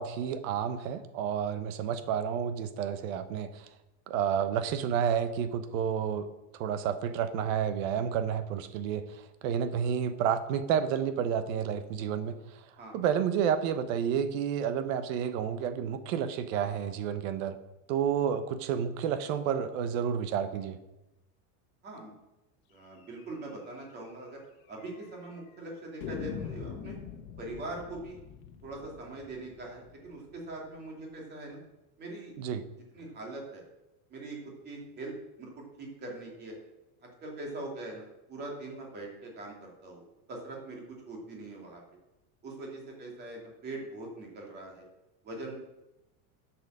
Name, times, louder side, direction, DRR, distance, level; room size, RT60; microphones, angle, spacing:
voice 1, 0.0-3.6 4.1-6.3 6.5-9.1 9.4-12.3 12.9-17.6 17.9-20.8 32.4-32.6, right 8 dB, 60° right, 11 dB, 1.1 m, -30 dB
voice 2, 22.7-24.4 24.7-27.0 27.4-28.2 28.6-31.6 32.0-32.3 32.9-33.6 34.1-34.4 34.6-36.6 37.2-40.0 40.3-41.8 42.4-44.9 45.2-45.5, right 2 dB, 20° right, -1 dB, 2.4 m, -42 dB
sound 1, 23.2-23.3 23.6-23.7 24.0-24.1 24.8-25.3 26.0-30.8, left 7 dB, 60° left, 1.4 m, -43 dB
8.6 x 7.4 x 6.6 m, 0.96 s
supercardioid pair, 180°, 46 cm